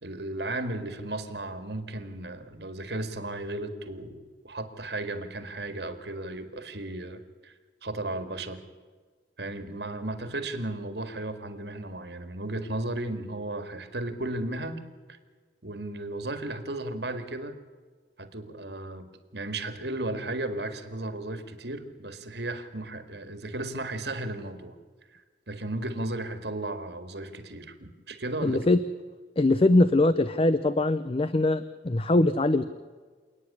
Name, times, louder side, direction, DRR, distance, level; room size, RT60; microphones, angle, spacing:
voice 1, 0.0-7.5 7.8-8.6 9.4-14.8 15.1-15.2 15.6-17.6 18.2-19.1 19.3-24.8 25.1-28.6, right 2 dB, 70° right, 9 dB, 2.0 m, -35 dB
voice 2, 28.4-28.8 29.4-32.6, left 2 dB, 30° left, 13 dB, 0.6 m, -22 dB
28.0 x 9.8 x 9.8 m, 1.5 s
head